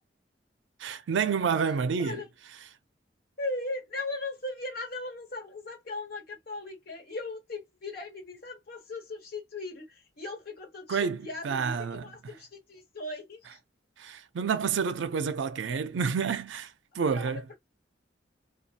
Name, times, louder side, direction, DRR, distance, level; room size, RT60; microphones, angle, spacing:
voice 1, 0.8-2.2 10.9-12.1 14.0-16.7 16.9-17.4, right 6 dB, 85° right, 0.4 m, -29 dB
voice 2, 1.6-2.3 3.4-13.6 15.6-15.8 17.1-17.5, left 2 dB, 60° left, 1.2 m, -38 dB
2.6 x 2.2 x 2.4 m
head